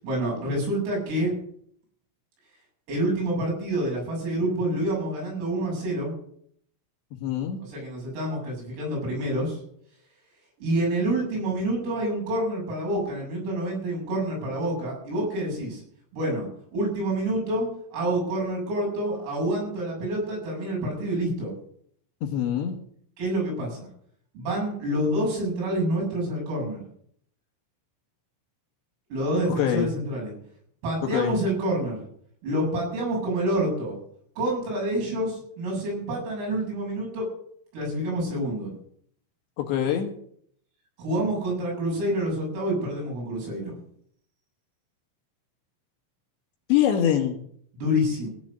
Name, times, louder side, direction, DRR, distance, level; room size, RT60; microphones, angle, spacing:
voice 1, 0.0-1.3 2.9-6.1 7.7-9.6 10.6-15.8 16.1-16.5 16.7-21.5 23.2-23.9 24.3-26.8 29.1-30.3 30.8-32.0 32.4-34.0 34.4-37.2 37.7-38.7 41.0-43.8 47.7-48.3, right 1 dB, 85° right, -2 dB, 10.0 m, -27 dB
voice 2, 7.2-7.6 22.2-22.8 29.5-29.9 31.0-31.4 39.6-40.1 46.7-47.4, left 10 dB, 65° left, 3 dB, 3.5 m, -24 dB
17.0 x 8.1 x 6.6 m, 0.64 s
omnidirectional pair, 5.9 m